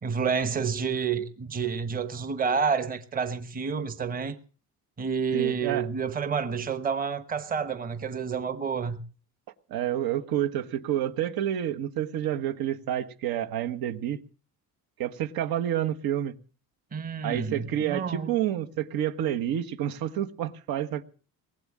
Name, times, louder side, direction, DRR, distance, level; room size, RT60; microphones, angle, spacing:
voice 1, 0.0-4.3 5.0-9.0 16.9-18.3, right 6 dB, 25° right, 1.0 m, -29 dB
voice 2, 5.3-5.8 9.7-14.2 15.0-16.3 17.2-21.0, right 11 dB, 85° right, 1.5 m, -29 dB
19.5 x 8.1 x 8.6 m
cardioid pair, 175°, 35 cm